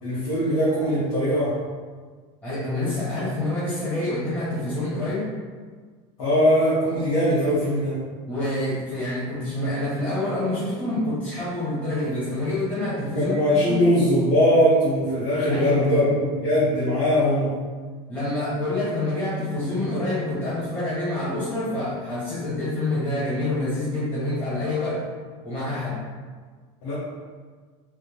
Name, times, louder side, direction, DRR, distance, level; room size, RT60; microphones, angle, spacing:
voice 1, 0.0-1.6 6.2-8.0 13.1-17.5 26.8-26.9, equal, 75° left, -10 dB, 1.4 m, -21 dB
voice 2, 2.4-5.3 8.3-13.3 13.7-13.8 15.5-16.1 18.1-25.0 25.4-26.0, left 1 dB, 10° left, -11 dB, 1.4 m, -27 dB
3.3 x 2.7 x 3.5 m, 1.5 s
supercardioid pair, 105°, 17 cm